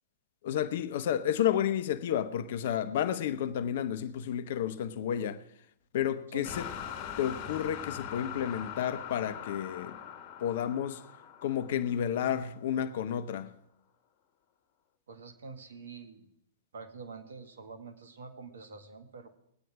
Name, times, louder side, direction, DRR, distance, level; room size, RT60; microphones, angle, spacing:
voice 1, 0.4-5.4 5.9-6.7 7.2-10.0 10.4-11.0 11.4-13.5, left 10 dB, 55° left, 0.8 m, -31 dB
sound 1, 6.4-12.5, left 8 dB, 40° left, 1.4 m, -42 dB
voice 2, 15.1-16.3 16.7-19.4, right 4 dB, 70° right, 1.8 m, -46 dB
20.5 x 9.4 x 4.9 m
figure-of-eight pair, 110°, 0 cm